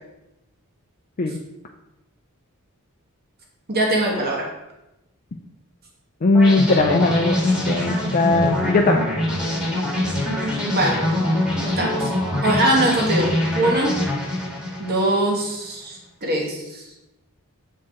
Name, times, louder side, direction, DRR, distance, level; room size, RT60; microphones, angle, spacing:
voice 1, 3.7-4.5 10.6-11.2 11.6-12.1 12.4-14.0 14.8-16.8, right 1 dB, 45° right, 0 dB, 1.5 m, -22 dB
voice 2, 6.2-9.1, left 2 dB, 40° left, 2 dB, 0.4 m, -19 dB
sound 1, 6.3-15.4, left 1 dB, 5° right, 1.6 m, -24 dB
7.3 x 4.5 x 3.6 m, 0.92 s
head